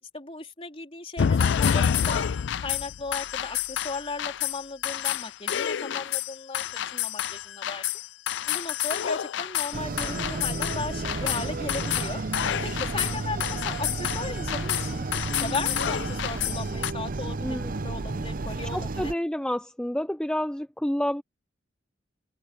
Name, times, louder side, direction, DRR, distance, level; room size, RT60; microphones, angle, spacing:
voice 1, 0.1-2.3 2.6-7.8 8.5-12.2 12.6-15.1 15.4-19.1, left 3 dB, 30° left, 3.9 m, -36 dB
sound 1, 1.2-16.9, left 9 dB, 70° left, 0.4 m, -28 dB
sound 2, 9.7-19.1, right 3 dB, 50° right, 0.7 m, -32 dB
voice 2, 17.4-17.7 18.7-21.2, left 1 dB, 5° left, 0.5 m, -29 dB
open air
head